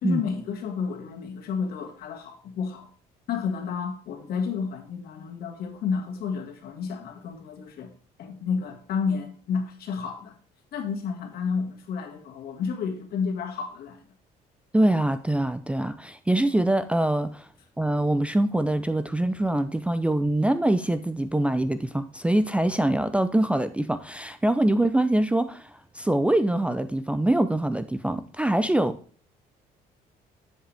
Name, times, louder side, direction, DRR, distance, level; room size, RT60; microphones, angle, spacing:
voice 1, 0.0-2.9 3.3-7.9 8.2-10.4 10.7-14.0, left 6 dB, 65° left, 2.0 m, -31 dB
voice 2, 14.7-17.5 17.8-29.0, right 1 dB, 5° right, 0.5 m, -24 dB
10.0 x 7.4 x 3.4 m
cardioid pair, 110°, 17 cm